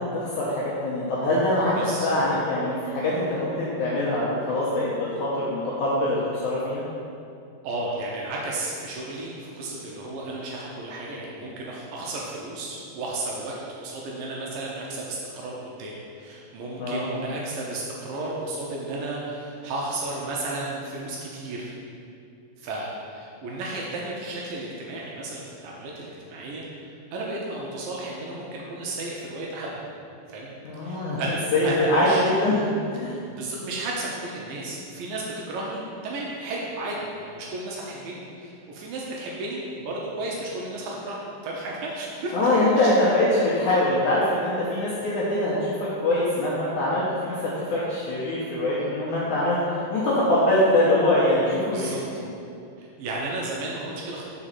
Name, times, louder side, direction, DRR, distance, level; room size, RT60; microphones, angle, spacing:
voice 1, 0.0-6.8 16.8-17.2 30.6-31.2 31.5-33.2 42.3-52.3, left 1 dB, 75° left, -8 dB, 1.8 m, -23 dB
voice 2, 1.8-2.1 7.6-21.7 22.6-29.8 30.3-30.5 30.8-31.4 31.6-32.6 33.1-42.5 42.8-42.9 51.7-52.0 52.8-54.2, right 2 dB, 75° right, -3 dB, 2.2 m, -33 dB
5.1 x 5.0 x 5.7 m, 2.5 s
omnidirectional pair, 4.4 m